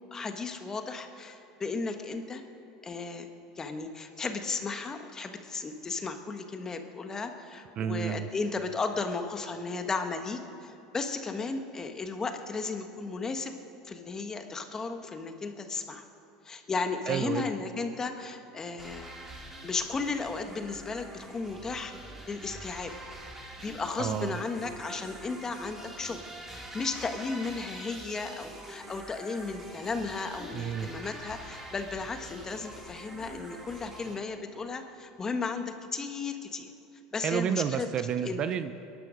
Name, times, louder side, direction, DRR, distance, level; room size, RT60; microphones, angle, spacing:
voice 1, 0.1-2.4 2.8-3.3 3.5-13.6 13.8-16.0 16.4-19.1 19.6-21.9 22.3-22.9 23.6-26.2 26.5-36.7 37.1-37.9 38.2-38.4, left 4 dB, 25° left, 6 dB, 1.3 m, -35 dB
voice 2, 7.8-8.3 17.1-17.5 24.0-24.3 30.5-30.9 37.2-38.7, right 8 dB, 45° right, 11 dB, 0.7 m, -30 dB
sound 1, 18.8-34.1, right 1 dB, 15° right, 2.6 m, -45 dB
21.0 x 11.5 x 5.2 m, 2.8 s
supercardioid pair, 105°, 2 cm